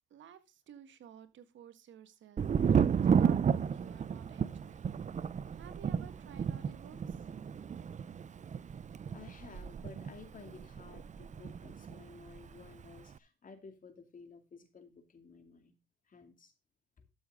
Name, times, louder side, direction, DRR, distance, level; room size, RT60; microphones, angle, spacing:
voice 1, 0.1-5.0 5.5-7.2, right 9 dB, 70° right, 1.7 m, -53 dB
Thunder, 2.4-12.0 12.3-13.0, right 7 dB, 40° right, 0.6 m, -32 dB
voice 2, 9.1-15.8 16.1-16.5 17.0-17.1, left 5 dB, 40° left, 2.7 m, -54 dB
13.0 x 7.0 x 3.8 m
cardioid pair, 90°, 20 cm